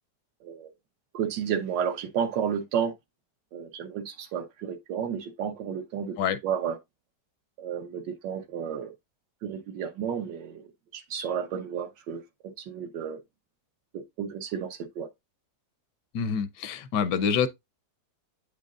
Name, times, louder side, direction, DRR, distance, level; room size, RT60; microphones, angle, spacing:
voice 1, 1.1-2.9 3.5-6.2 6.4-6.8 7.6-8.9 9.4-10.6 10.9-12.2 12.6-13.2 13.9-15.1, right 8 dB, 90° right, 1.7 m, -32 dB
voice 2, 16.1-17.5, left 7 dB, 80° left, 1.3 m, -26 dB
8.5 x 5.2 x 2.4 m
omnidirectional pair, 1.9 m